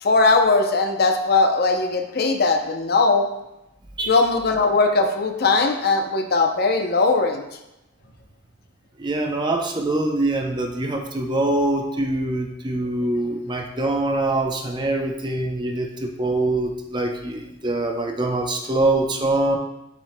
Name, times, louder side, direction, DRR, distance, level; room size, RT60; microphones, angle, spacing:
voice 1, 0.0-3.3 4.1-7.4, left 3 dB, 50° left, 5 dB, 0.6 m, -19 dB
voice 2, 9.0-19.6, right 2 dB, 25° right, 3 dB, 0.6 m, -24 dB
7.5 x 7.4 x 2.2 m, 0.90 s
head